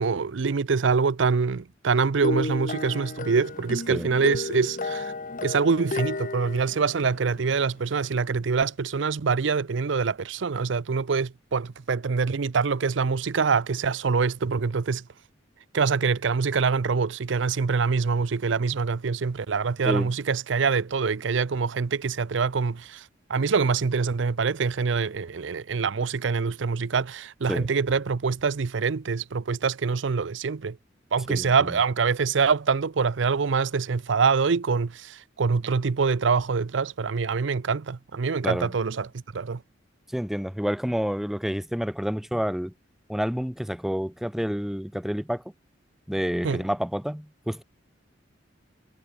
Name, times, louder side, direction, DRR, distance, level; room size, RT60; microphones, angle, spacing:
voice 1, 0.0-5.1 5.4-15.0 15.7-30.8 31.1-39.6 46.4-46.6, right 5 dB, 75° right, 0.6 m, -25 dB
sound 1, 2.2-7.7, left 2 dB, 45° left, 1.1 m, -33 dB
voice 2, 31.3-31.7 38.4-38.7 40.1-42.7 43.1-45.4 46.1-47.6, equal, ahead, 0.4 m, -29 dB
head